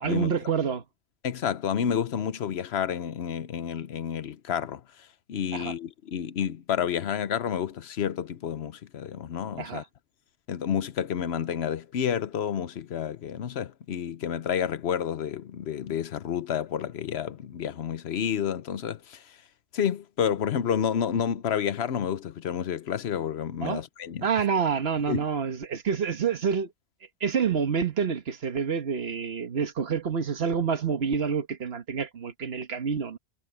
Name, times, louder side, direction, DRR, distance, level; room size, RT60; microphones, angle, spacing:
voice 1, 0.0-0.8 5.5-5.7 9.6-9.8 23.6-23.8 24.2-26.7 27.2-33.2, right 6 dB, 75° right, 1.5 m, -27 dB
voice 2, 1.2-4.8 5.3-9.8 10.5-19.4 19.7-24.3 25.1-25.2, left 8 dB, 90° left, 1.0 m, -30 dB
omnidirectional pair, 1.0 m